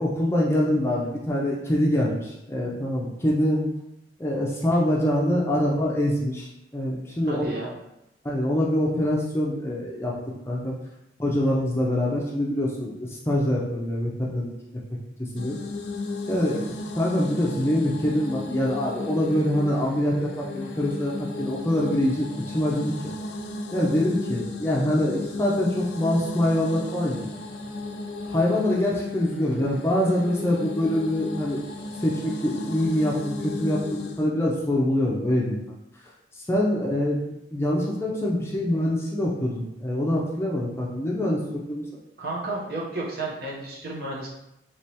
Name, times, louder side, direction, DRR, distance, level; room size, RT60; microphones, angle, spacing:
voice 1, 0.0-3.6 4.2-7.5 8.2-10.2 10.5-10.8 11.2-14.5 15.2-15.6 16.3-22.3 22.5-22.9 23.7-27.2 28.3-31.7 32.0-35.6 36.3-41.4 41.7-41.8, left 1 dB, 15° left, -4 dB, 0.5 m, -24 dB
voice 2, 7.3-7.7 16.5-16.8 42.2-44.3, right 2 dB, 55° right, -4 dB, 0.8 m, -32 dB
sound 1, 15.4-34.3, left 2 dB, 65° left, 0.4 m, -35 dB
3.3 x 3.0 x 2.8 m, 0.87 s
head